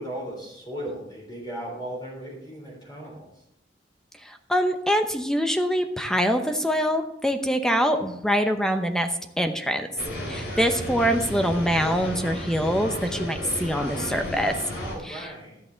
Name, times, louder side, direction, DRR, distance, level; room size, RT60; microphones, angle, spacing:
voice 1, 0.0-3.4 14.7-15.6, right 1 dB, 25° left, -2 dB, 3.6 m, -37 dB
voice 2, 4.2-9.1 9.4-9.9 10.3-14.6 15.1-15.3, equal, 5° left, 6 dB, 0.8 m, -24 dB
sound 1, 10.0-15.0, equal, 65° left, 3.4 m, -33 dB
12.5 x 8.7 x 3.9 m, 0.83 s
head